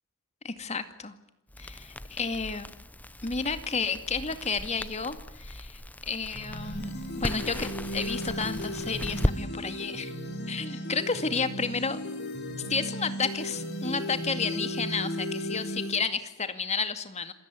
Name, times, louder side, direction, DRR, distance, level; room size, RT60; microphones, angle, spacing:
voice 1, 0.4-1.1 1.6-2.7 3.2-6.9 7.2-10.1 10.5-12.0 12.7-17.3, left 4 dB, 30° left, 10 dB, 2.3 m, -31 dB
Crackle, 1.5-9.4, left 1 dB, 10° left, 0.8 m, -36 dB
sound 1, 6.3-15.9, equal, 55° left, 4.7 m, -35 dB
27.5 x 16.5 x 9.7 m, 0.87 s
head